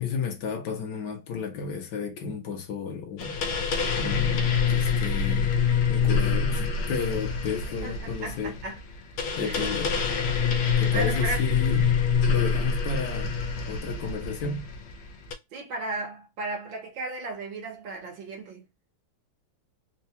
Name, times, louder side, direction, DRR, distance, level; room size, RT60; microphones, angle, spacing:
voice 1, 0.0-3.4 4.0-5.5 5.9-8.5 9.4-10.0 10.8-11.9 12.3-13.3 13.7-14.7, left 5 dB, 65° left, 1.4 m, -32 dB
sound 1, 3.2-15.3, left 6 dB, 85° left, 1.5 m, -26 dB
voice 2, 7.8-8.8 9.4-9.7 10.7-11.4 15.5-18.7, right 3 dB, 75° right, 1.8 m, -35 dB
4.4 x 2.3 x 2.8 m
omnidirectional pair, 2.1 m